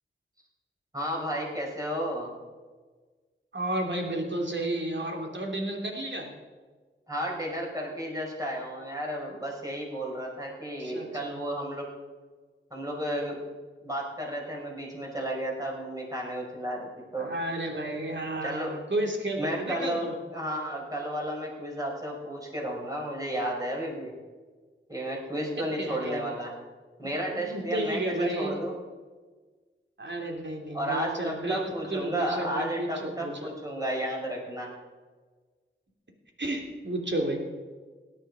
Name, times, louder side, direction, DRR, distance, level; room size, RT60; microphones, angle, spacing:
voice 1, 0.9-2.3 7.1-11.9 12.7-13.4 13.8-17.3 18.4-18.7 19.4-24.1 24.9-26.5 27.0-28.7 30.7-34.7, right 1 dB, 15° right, -2 dB, 5.4 m, -33 dB
voice 2, 3.5-6.3 10.8-11.4 17.2-20.1 25.6-26.3 27.1-28.6 30.0-33.5 36.4-37.4, right 1 dB, 60° right, 1 dB, 3.1 m, -32 dB
17.5 x 11.0 x 5.0 m, 1.4 s
wide cardioid pair, 55°, 21 cm